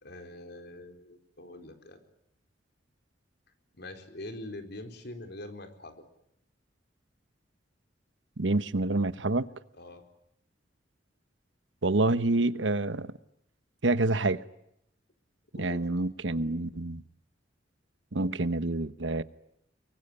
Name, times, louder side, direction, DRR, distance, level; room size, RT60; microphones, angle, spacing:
voice 1, 0.0-2.0 3.7-6.1 9.7-10.0 15.6-16.1, left 1 dB, 65° left, 4.4 m, -44 dB
voice 2, 8.4-9.5 11.8-13.1 13.8-14.4 15.6-17.0 18.1-19.2, right 2 dB, 85° right, 1.1 m, -27 dB
24.5 x 23.0 x 9.9 m
head